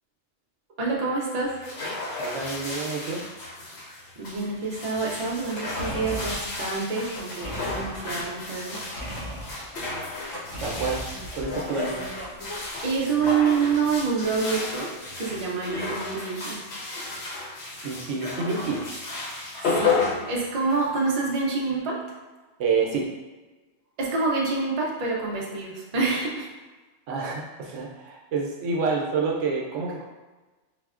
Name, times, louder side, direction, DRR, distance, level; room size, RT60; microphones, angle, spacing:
voice 1, 0.8-1.5 4.2-8.8 12.8-14.9 15.2-16.6 19.6-22.0 24.0-26.5, right 4 dB, 45° right, -3 dB, 0.5 m, -27 dB
sound 1, 1.4-21.0, left 3 dB, 65° left, 0.9 m, -33 dB
voice 2, 2.2-3.2 9.8-10.1 10.6-11.0 11.3-12.0 17.8-18.8 22.6-23.1 27.1-30.0, right 4 dB, 80° right, -1 dB, 0.9 m, -28 dB
sound 2, 5.4-14.0 14.3-14.4, equal, 85° left, 1.0 m, -38 dB
4.0 x 2.1 x 2.4 m, 1.2 s
omnidirectional pair, 1.2 m